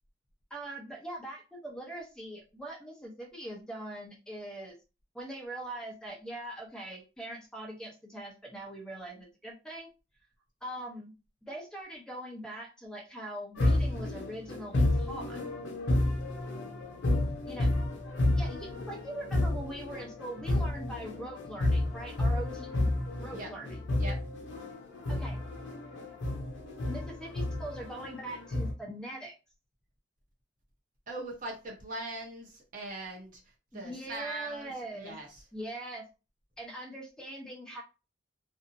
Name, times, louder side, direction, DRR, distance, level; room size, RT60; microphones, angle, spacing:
voice 1, 0.5-4.8 5.1-9.9 10.6-11.1 11.4-15.4 17.4-17.7 18.4-22.9 23.2-23.8 25.1-25.4 26.9-29.3 33.7-35.2 35.5-36.1 36.6-37.8, right 1 dB, 5° left, -1 dB, 0.7 m, -42 dB
sound 1, 13.6-28.7, left 1 dB, 80° left, 0.6 m, -31 dB
voice 2, 31.1-33.4 33.7-35.4, right 2 dB, 45° right, -1 dB, 0.8 m, -41 dB
2.5 x 2.0 x 2.6 m, 0.31 s
head